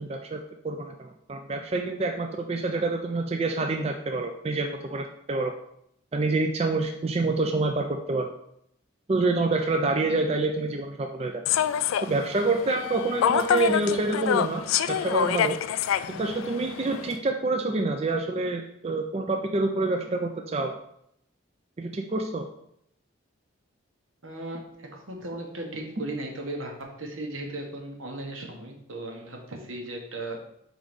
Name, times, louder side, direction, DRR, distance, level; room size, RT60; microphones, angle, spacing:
voice 1, 0.0-5.5 6.1-8.3 9.1-11.4 12.0-15.6 16.1-20.8 21.8-22.5, right 3 dB, 30° right, 4 dB, 0.4 m, -27 dB
Human voice / Subway metro underground, 11.5-17.2, left 9 dB, 85° left, 0.3 m, -27 dB
voice 2, 24.2-30.4, right 1 dB, 80° right, 2 dB, 1.2 m, -36 dB
4.7 x 3.9 x 5.1 m, 0.74 s
head